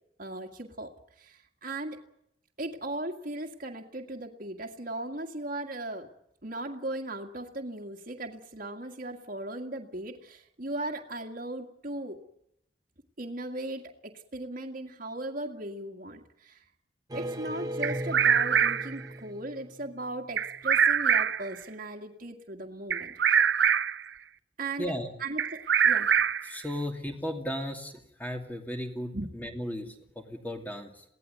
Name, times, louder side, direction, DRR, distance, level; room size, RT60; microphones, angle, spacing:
voice 1, 0.2-2.0 2.6-6.1 6.4-12.2 13.2-16.6 17.1-23.5 24.6-26.1 29.1-29.3, right 1 dB, 50° right, 1 dB, 2.0 m, -38 dB
sound 1, 17.1-20.2, right 1 dB, 20° right, 1.2 m, -37 dB
Bird vocalization bird call bird song, 17.8-19.0 20.4-21.5 22.9-24.1 25.4-26.6, right 7 dB, 75° right, 0.8 m, -24 dB
voice 2, 24.8-25.1 26.4-27.9 28.2-31.0, equal, 10° left, 4 dB, 2.7 m, -35 dB
22.5 x 17.0 x 9.5 m, 0.77 s
head